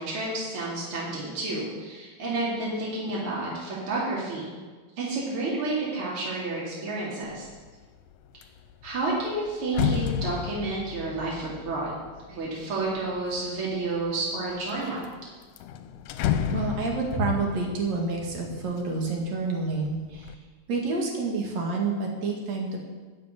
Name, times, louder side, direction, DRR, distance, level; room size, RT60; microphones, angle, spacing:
voice 1, 0.0-4.5 5.0-7.5 8.8-11.9 12.3-15.0, right 2 dB, 50° right, -6 dB, 3.5 m, -30 dB
sound 1, 7.3-7.7 8.1-13.4 14.0-14.7 15.0-15.1 15.4-19.3 19.7-20.4, left 8 dB, 85° left, 2.1 m, -32 dB
voice 2, 16.5-20.3 20.7-22.8, right 3 dB, 65° right, 0 dB, 3.2 m, -28 dB
11.0 x 5.9 x 9.0 m, 1.4 s
omnidirectional pair, 3.3 m